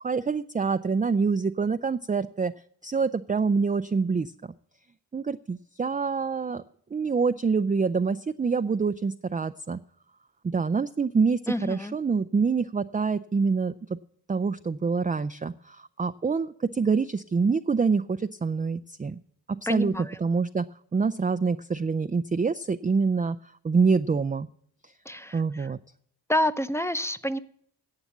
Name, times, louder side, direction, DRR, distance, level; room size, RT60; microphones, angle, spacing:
voice 1, 0.0-2.5 2.8-4.5 5.1-6.6 6.9-9.8 10.4-13.7 14.3-19.2 19.5-19.9 20.2-20.6 20.9-23.4 23.6-24.5 25.3-25.8, right 5 dB, 20° right, 10 dB, 0.4 m, -26 dB
voice 2, 11.5-12.0 19.7-20.2 25.0-25.7 26.3-27.4, left 1 dB, 5° left, 13 dB, 0.7 m, -28 dB
11.5 x 8.0 x 7.2 m, 0.64 s
cardioid pair, 60°, 41 cm